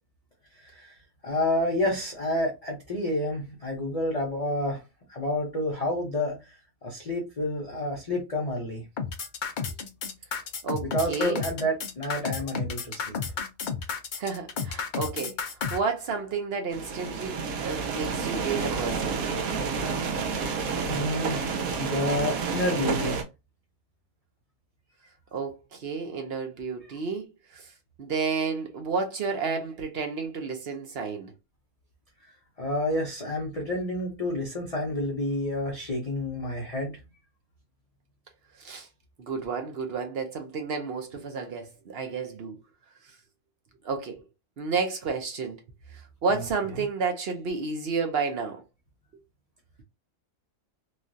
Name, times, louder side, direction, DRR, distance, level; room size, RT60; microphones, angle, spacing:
voice 1, 0.6-0.9 1.2-4.8 5.1-6.4 6.8-8.8 10.8-13.2 20.8-21.5 21.8-23.2 32.6-37.0 46.3-46.4, left 1 dB, 35° left, 0.6 m, -29 dB
sound 1, 9.0-15.8, left 6 dB, 75° left, 0.4 m, -32 dB
voice 2, 10.6-11.4 14.2-19.2 25.3-27.3 27.5-27.6 28.0-31.3 38.6-38.9 39.2-42.6 43.8-44.2 44.6-45.6 46.2-48.6, right 5 dB, 55° right, 0.8 m, -31 dB
sound 2, 16.7-23.2, right 5 dB, 85° right, 1.1 m, -29 dB
3.1 x 2.4 x 2.5 m
omnidirectional pair, 1.4 m